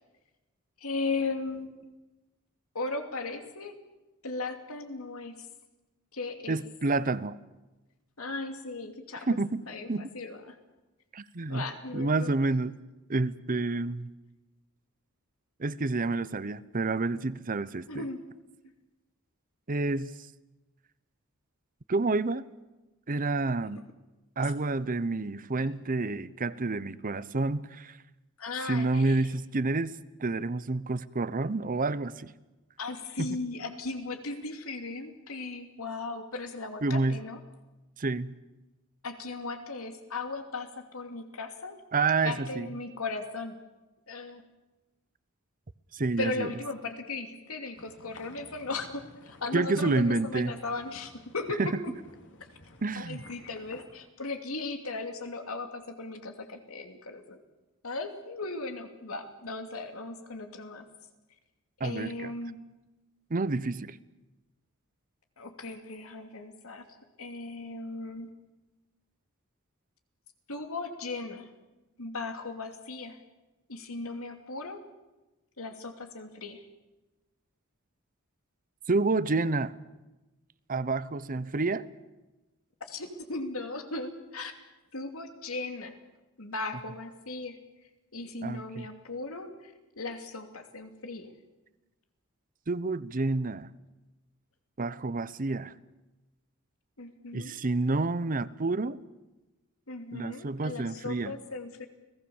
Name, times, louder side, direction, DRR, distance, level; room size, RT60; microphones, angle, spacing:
voice 1, 0.8-1.7 2.7-3.8 4.2-5.4 6.1-6.6 8.2-9.3 9.7-9.9 10.1-10.6 11.5-12.3 17.9-18.2 25.5-25.7 28.4-29.4 32.8-37.4 39.0-41.8 42.2-43.6 44.1-44.4 46.2-51.9 53.0-57.4 57.8-60.9 61.8-62.6 65.4-68.3 70.5-71.5 72.0-73.2 73.7-74.8 75.6-76.6 82.8-84.5 84.9-86.0 86.4-87.6 88.1-91.3 97.0-97.6 99.9-101.9, left 3 dB, 85° left, 5 dB, 2.8 m, -37 dB
voice 2, 6.5-7.4 9.3-9.6 9.9-10.1 11.1-11.6 11.9-12.7 13.1-14.1 15.6-18.0 19.7-20.1 21.9-22.5 23.1-23.8 24.4-28.0 28.6-29.9 30.2-32.3 33.2-33.4 36.8-37.2 38.0-38.3 41.9-42.7 45.9-46.5 49.5-50.5 51.6-51.8 52.8-53.2 61.8-62.3 63.3-64.0 78.9-79.7 80.7-81.9 88.4-88.9 92.7-93.7 94.8-95.7 97.3-99.0 100.1-101.4, right 3 dB, 40° right, 16 dB, 0.8 m, -29 dB
sound 1, 47.7-53.8, left 2 dB, 60° left, 3.1 m, -53 dB
30.0 x 18.5 x 7.2 m, 1.1 s
head